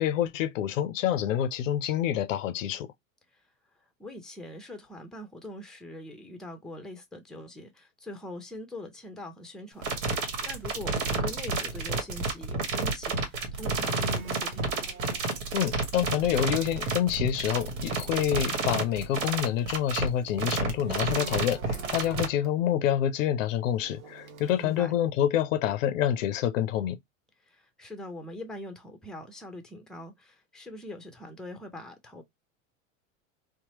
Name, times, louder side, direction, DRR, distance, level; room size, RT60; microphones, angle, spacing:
voice 1, 0.0-2.9 15.5-27.0, left 10 dB, 70° left, 0.5 m, -27 dB
voice 2, 4.0-14.8 24.6-25.0 27.4-32.2, left 1 dB, ahead, 0.7 m, -43 dB
sound 1, 9.8-22.3, right 4 dB, 65° right, 1.2 m, -30 dB
sound 2, 12.1-15.7 16.0-16.4 17.1-20.2 20.7-22.6 23.2-24.9, right 2 dB, 85° right, 0.9 m, -47 dB
2.8 x 2.2 x 2.9 m
hypercardioid pair, 85°, 41 cm